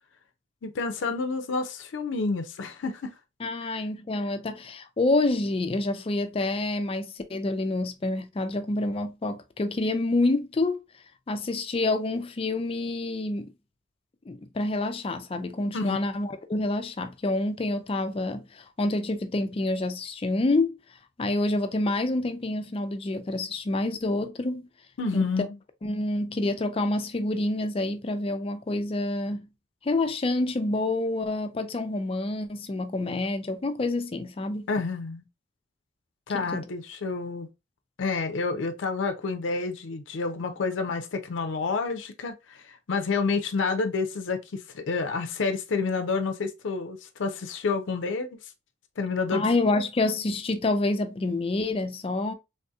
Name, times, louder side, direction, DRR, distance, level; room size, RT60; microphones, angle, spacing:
voice 1, 0.6-3.1 3.7-3.8 15.7-16.0 25.0-25.6 34.7-35.2 36.3-37.5 38.0-48.5 49.0-49.5 49.7-49.8, left 4 dB, 90° left, 0.5 m, -29 dB
voice 2, 3.4-10.8 11.3-13.5 14.3-20.8 21.2-24.7 25.1-25.2 25.8-29.5 29.8-34.6 36.3-36.6 49.3-52.3, left 2 dB, 30° left, 0.4 m, -27 dB
3.4 x 2.7 x 2.3 m
head